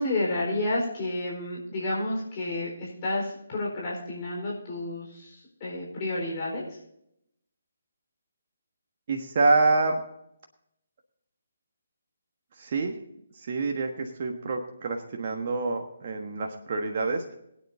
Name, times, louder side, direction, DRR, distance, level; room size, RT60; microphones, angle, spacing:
voice 1, 0.0-6.6, left 1 dB, 35° left, -4 dB, 4.3 m, -30 dB
voice 2, 9.1-10.0 12.6-12.9 13.3-17.3, right 3 dB, 45° right, 2 dB, 1.3 m, -27 dB
21.5 x 9.4 x 2.7 m, 0.78 s
figure-of-eight pair, 145°, 0 cm